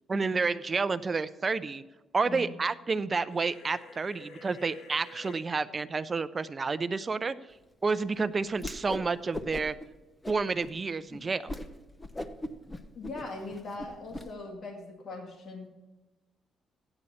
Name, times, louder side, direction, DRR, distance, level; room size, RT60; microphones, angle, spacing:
voice 1, 0.1-1.8 2.1-7.3 7.8-9.7 10.3-11.6, right 4 dB, 30° right, 13 dB, 0.6 m, -30 dB
sound 1, 3.3-5.4, left 3 dB, 80° left, 1.8 m, -49 dB
Whoosh swoosh swish, 8.6-9.1 9.3-9.9 10.2-10.7 11.1-11.2 11.5-11.7 12.0-14.2, left 1 dB, 20° left, 0.9 m, -38 dB
voice 2, 13.0-15.7, left 3 dB, 50° left, 0 dB, 2.1 m, -40 dB
15.0 x 9.9 x 4.3 m, 1.1 s
cardioid pair, 90°, 0 cm